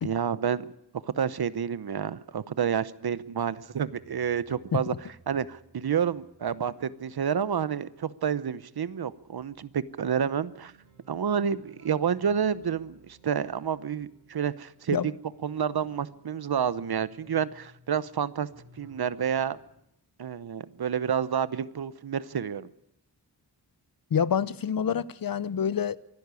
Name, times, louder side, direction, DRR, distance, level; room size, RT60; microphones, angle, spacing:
voice 1, 0.0-0.7 1.0-4.9 5.3-10.7 11.1-15.1 15.4-18.5 18.8-19.6 20.2-22.7, right 7 dB, 70° right, 0.9 m, -29 dB
sound 1, 3.0-19.8, right 2 dB, 50° right, 5.5 m, -59 dB
voice 2, 24.1-26.0, left 7 dB, 60° left, 0.7 m, -27 dB
24.0 x 12.0 x 9.7 m
wide cardioid pair, 90°, 40 cm